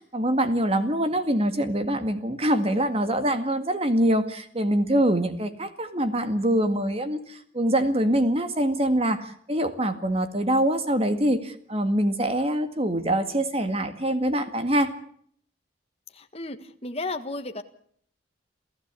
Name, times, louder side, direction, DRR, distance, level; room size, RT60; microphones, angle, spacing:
voice 1, 0.0-14.9, right 1 dB, 30° right, 10 dB, 2.0 m, -24 dB
voice 2, 16.1-17.6, left 2 dB, 30° left, 7 dB, 1.6 m, -34 dB
28.0 x 15.0 x 8.4 m, 0.62 s
head